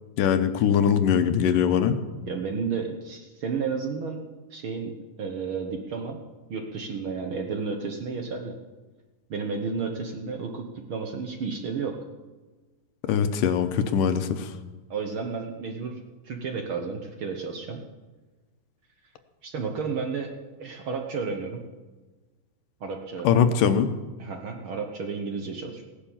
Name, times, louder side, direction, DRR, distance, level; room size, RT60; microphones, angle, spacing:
voice 1, 0.2-2.0 13.1-14.5 23.2-23.9, left 8 dB, 85° left, 8 dB, 2.4 m, -22 dB
voice 2, 2.3-4.2 4.5-4.9 5.2-6.2 6.5-8.5 9.3-11.9 14.9-16.0 16.2-17.8 19.4-20.3 20.6-21.6 22.8-23.3 24.2-25.8, right 5 dB, 65° right, 3 dB, 1.3 m, -32 dB
17.0 x 10.0 x 7.2 m, 1.3 s
omnidirectional pair, 3.8 m